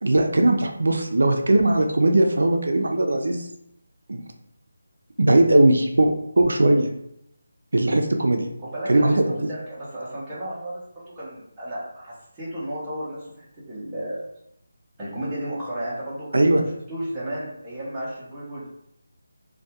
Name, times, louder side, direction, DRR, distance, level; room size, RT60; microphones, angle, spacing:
voice 1, 0.0-3.5 4.1-4.2 5.2-6.9 7.7-8.5 8.9-9.5 16.3-16.6, right 2 dB, 65° right, 3 dB, 0.3 m, -19 dB
voice 2, 8.7-14.2 15.0-16.3 16.9-18.6, right 1 dB, 5° right, -11 dB, 0.5 m, -33 dB
2.2 x 2.1 x 2.7 m, 0.76 s
figure-of-eight pair, 180°, 0 cm